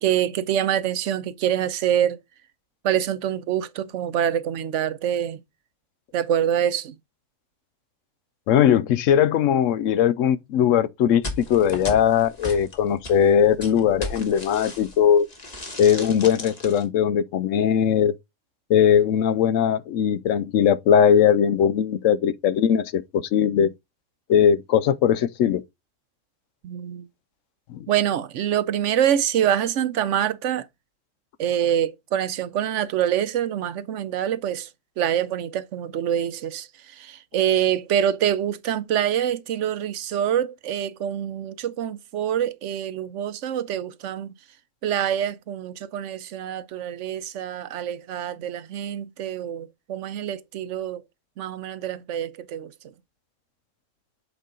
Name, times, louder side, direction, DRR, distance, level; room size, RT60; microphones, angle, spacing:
voice 1, 0.0-2.2 2.8-5.4 6.1-6.9 26.6-27.0 27.9-30.7 31.4-34.7 35.0-44.3 44.8-51.0 51.4-52.7, right 10 dB, 70° right, 0.9 m, -25 dB
voice 2, 8.5-15.3 15.8-18.1 18.7-23.7 24.3-25.6 27.7-27.9, left 8 dB, 75° left, 0.9 m, -20 dB
sound 1, 11.2-15.0 15.3-16.8, left 2 dB, 30° left, 1.5 m, -36 dB
8.1 x 4.4 x 3.7 m
omnidirectional pair, 1.3 m